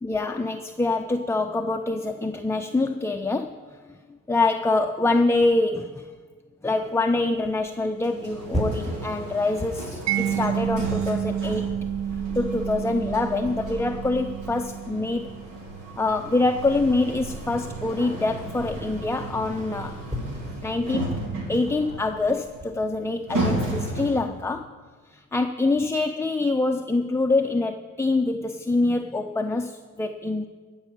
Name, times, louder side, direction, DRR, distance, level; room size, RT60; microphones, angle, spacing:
voice 1, 0.0-3.6 4.3-6.1 6.6-11.7 12.3-15.3 16.0-20.0 20.6-24.7 25.1-30.5, left 2 dB, 10° left, 5 dB, 0.5 m, -25 dB
sound 1, 6.7-22.6, equal, 25° right, 4.2 m, -39 dB
sound 2, 8.0-24.4, right 2 dB, 85° right, 3.2 m, -34 dB
Mallet percussion, 10.1-16.8, right 10 dB, 65° right, 0.5 m, -30 dB
14.5 x 5.4 x 8.9 m, 1.5 s
cardioid pair, 90°, 30 cm